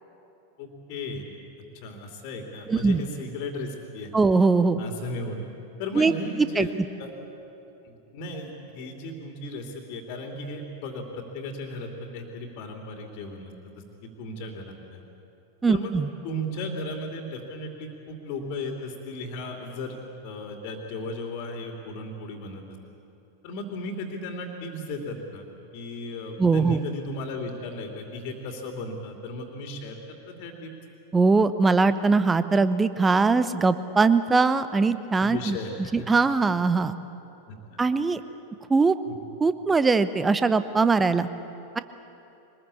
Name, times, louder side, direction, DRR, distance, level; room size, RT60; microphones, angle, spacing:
voice 1, 0.6-1.2 1.7-4.1 4.8-5.4 5.8-6.7 7.0-7.1 7.8-15.0 15.7-15.9 16.2-20.0 20.2-22.6 23.4-25.4 25.7-30.7 35.2-36.1 37.5-37.8 39.1-39.2, left 2 dB, 45° left, 2 dB, 2.8 m, -36 dB
voice 2, 2.7-3.0 4.1-4.8 5.9-6.1 6.6-6.7 15.6-16.1 26.4-26.8 31.1-35.6 35.9-37.0 37.8-38.2 38.7-38.9 39.4-41.3, right 4 dB, 15° right, 12 dB, 0.9 m, -21 dB
23.0 x 20.5 x 8.5 m, 3.0 s
figure-of-eight pair, 90°, 0 cm